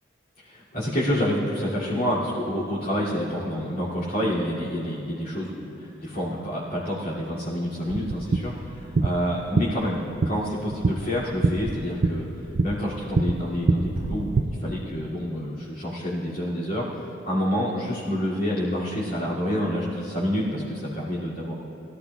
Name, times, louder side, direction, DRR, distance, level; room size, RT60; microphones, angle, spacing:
voice 1, 0.5-12.3 12.6-21.5, equal, 50° left, -10 dB, 2.6 m, -28 dB
sound 1, 7.9-14.4, right 3 dB, 60° right, 0.5 m, -26 dB
21.0 x 13.5 x 2.4 m, 2.7 s
head